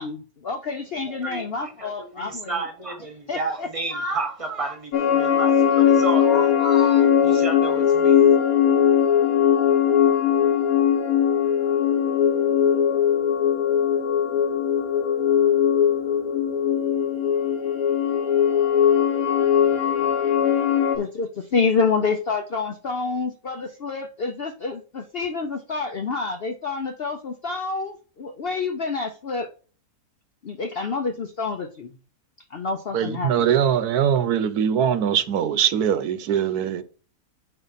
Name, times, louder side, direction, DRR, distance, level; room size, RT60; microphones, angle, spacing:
voice 1, 0.0-2.7 3.3-3.7 21.0-29.5 30.4-31.9 32.5-33.5, left 4 dB, 55° left, 0.7 m, -28 dB
voice 2, 1.1-8.3, right 2 dB, 25° right, 1.3 m, -31 dB
sound 1, 4.9-21.0, left 8 dB, 70° left, 1.3 m, -20 dB
voice 3, 32.9-36.8, right 8 dB, 85° right, 1.2 m, -22 dB
7.6 x 5.5 x 4.1 m
omnidirectional pair, 1.6 m